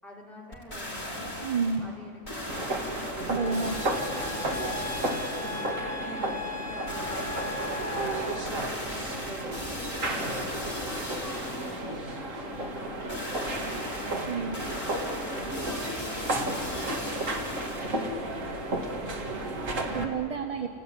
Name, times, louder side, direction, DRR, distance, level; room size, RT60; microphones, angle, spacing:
voice 1, 0.0-1.3 1.8-7.5 7.9-11.8 12.3-14.8 15.2-19.5, left 1 dB, ahead, -5 dB, 5.6 m, -46 dB
sound 1, 0.5-1.8 2.2-5.8 6.9-11.8 13.1-18.0 18.5-18.6, left 1 dB, 35° left, 4.9 m, -38 dB
voice 2, 1.4-1.9 3.3-4.1 4.6-4.8 11.9-12.0 14.2-14.5 19.9-20.7, right 5 dB, 30° right, 6 dB, 0.9 m, -30 dB
sound 2, 2.5-20.0, right 1 dB, 75° right, 2.5 m, -33 dB
sound 3, 3.4-8.4, left 2 dB, 75° left, 4.1 m, -37 dB
30.0 x 17.5 x 9.9 m, 2.9 s
omnidirectional pair, 1.4 m